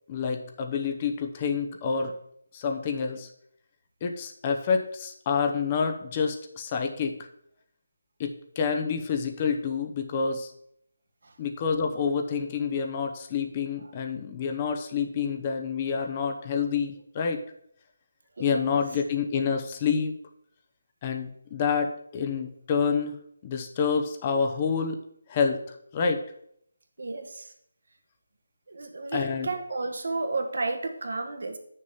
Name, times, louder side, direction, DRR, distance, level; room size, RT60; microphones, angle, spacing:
voice 1, 0.1-2.1 2.5-3.3 4.0-7.3 8.2-10.5 11.4-17.4 18.4-20.2 21.0-25.0 25.3-26.2 29.1-29.5, left 6 dB, 30° left, 5 dB, 0.8 m, -28 dB
voice 2, 18.4-18.8 27.0-27.5 28.7-31.6, right 3 dB, 65° right, 5 dB, 1.4 m, -32 dB
6.6 x 5.3 x 7.1 m, 0.70 s
figure-of-eight pair, 155°, 0 cm